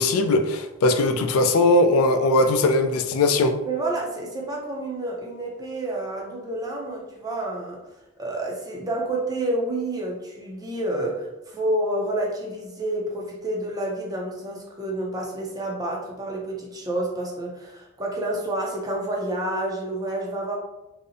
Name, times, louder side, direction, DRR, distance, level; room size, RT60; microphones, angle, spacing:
voice 1, 0.0-3.6, left 2 dB, 90° left, 5 dB, 0.3 m, -20 dB
voice 2, 3.7-7.8 8.2-20.6, right 1 dB, 20° right, -2 dB, 0.4 m, -29 dB
2.7 x 2.0 x 2.5 m, 0.98 s
head